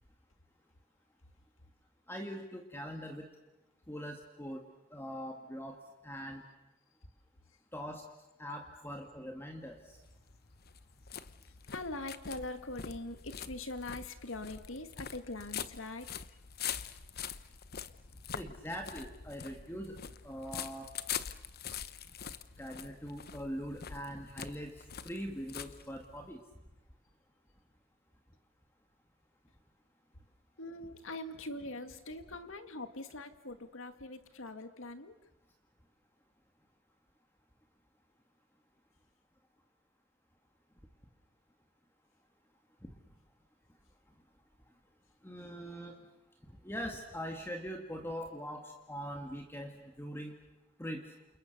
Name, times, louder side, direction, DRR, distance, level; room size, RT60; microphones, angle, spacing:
voice 1, 2.1-3.3 3.9-4.6 4.9-5.8 6.0-6.4 7.7-8.1 8.4-10.0 18.3-20.0 20.2-20.9 22.6-26.4 42.8-42.9 45.2-46.0 46.5-50.3 50.8-51.1, equal, 10° left, 3 dB, 2.0 m, -42 dB
sound 1, 9.8-26.3, left 8 dB, 50° left, 1.0 m, -44 dB
voice 2, 11.7-16.2 30.6-35.2, left 2 dB, 70° left, 8 dB, 2.1 m, -42 dB
29.0 x 28.0 x 6.8 m, 0.98 s
head